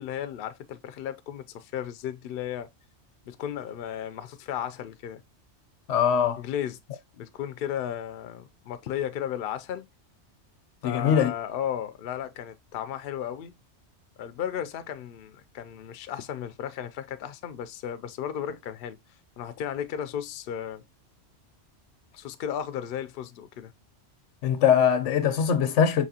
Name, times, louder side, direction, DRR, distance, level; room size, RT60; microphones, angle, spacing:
voice 1, 0.0-2.7 3.3-5.2 6.4-6.8 7.1-9.9 10.8-13.5 14.2-19.0 19.4-20.8 22.1-23.7, left 9 dB, 60° left, 0.6 m, -34 dB
voice 2, 5.9-6.4 10.8-11.3 24.4-26.0, left 8 dB, 85° left, 1.0 m, -22 dB
5.0 x 2.9 x 2.7 m
omnidirectional pair, 1.2 m